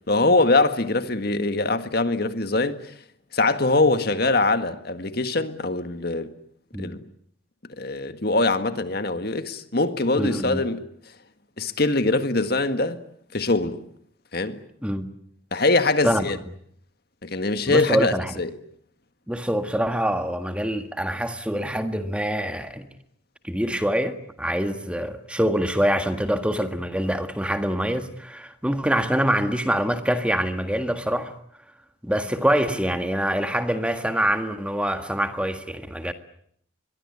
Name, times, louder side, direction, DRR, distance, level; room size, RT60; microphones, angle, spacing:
voice 1, 0.1-2.8 3.3-6.3 6.8-7.0 7.8-10.8 11.6-13.0 13.3-13.8 14.3-14.6 15.5-16.4 17.2-18.5, left 2 dB, 50° left, 1.8 m, -23 dB
voice 2, 10.1-10.6 14.8-15.0 16.0-16.3 17.7-18.4 19.3-22.9 23.4-31.3 32.0-36.1, equal, 5° right, 1.7 m, -25 dB
24.5 x 22.5 x 9.8 m
head